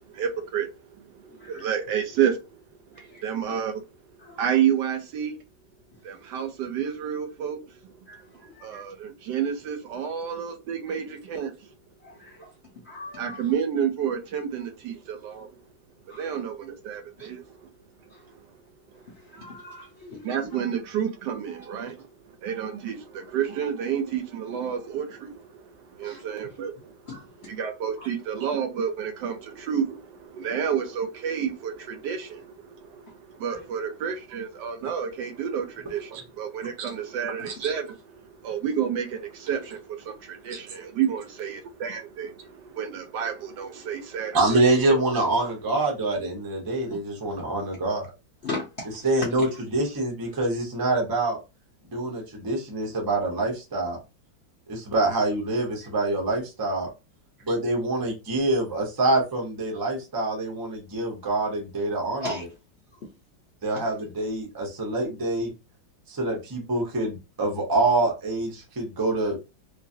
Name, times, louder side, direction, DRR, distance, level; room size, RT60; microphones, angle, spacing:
voice 1, 0.1-0.7 1.2-2.4 3.0-3.7 4.4-5.4 6.0-7.9 8.6-11.5 13.2-15.5 16.2-17.5 20.2-22.1 22.4-27.0 27.5-44.4 44.9-45.0, right 8 dB, 75° right, 1.1 m, -30 dB
voice 2, 1.3-1.7 2.9-3.2 4.2-4.6 8.1-8.8 12.0-12.5 12.8-13.5 16.1-16.4 17.2-17.3 18.1-18.3 19.1-20.6 26.0-26.2 27.1-27.2 28.0-28.1 33.5-33.6 36.6-36.7 37.4-37.5 48.4-49.1 49.3-49.4 62.2-62.4 63.7-63.8, left 2 dB, 60° left, 0.6 m, -39 dB
voice 3, 44.3-48.1 49.0-51.4 51.9-54.0 54.7-56.9 57.5-62.3 63.6-65.5 66.1-69.4, right 2 dB, 25° right, 0.4 m, -25 dB
3.0 x 2.4 x 2.6 m
omnidirectional pair, 2.0 m